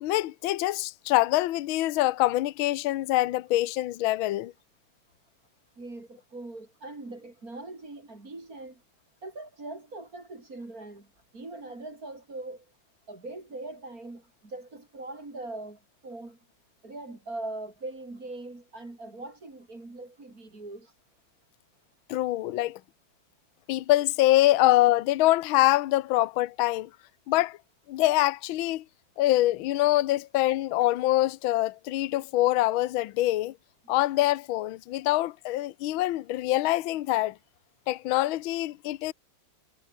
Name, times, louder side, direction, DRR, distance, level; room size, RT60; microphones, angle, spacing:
voice 1, 0.0-4.5 22.1-22.8 23.7-26.9 27.3-27.6 27.9-28.8 29.2-33.5 33.9-37.3 37.9-39.1, left 16 dB, 70° left, 1.5 m, -24 dB
voice 2, 5.8-8.8 9.2-11.1 11.3-12.7 13.1-16.4 16.8-20.9, right 2 dB, 40° right, 5.4 m, -41 dB
omnidirectional pair, 2.4 m